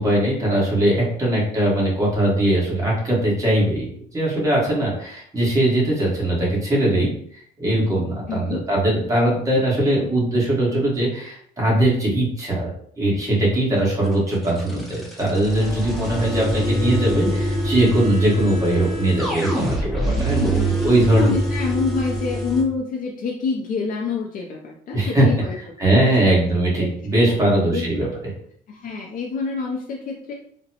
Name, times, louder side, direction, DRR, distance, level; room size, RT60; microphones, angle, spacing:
voice 1, 0.0-7.1 7.6-12.7 13.0-21.3 24.9-25.3 25.8-28.1, right 1 dB, 20° right, -5 dB, 1.5 m, -20 dB
voice 2, 8.3-8.6 18.3-18.4 20.4-20.7 21.1-25.6 25.9-26.0 26.8-26.9 27.3-27.8 28.7-30.3, left 4 dB, 55° left, -1 dB, 0.5 m, -27 dB
sound 1, 14.0-22.6, right 1 dB, ahead, 0.8 m, -25 dB
Wind instrument woodwind instrument, 16.5-21.5, left 1 dB, 80° right, 0.6 m, -36 dB
3.8 x 2.2 x 2.8 m, 0.62 s
cardioid pair, 110°, 17 cm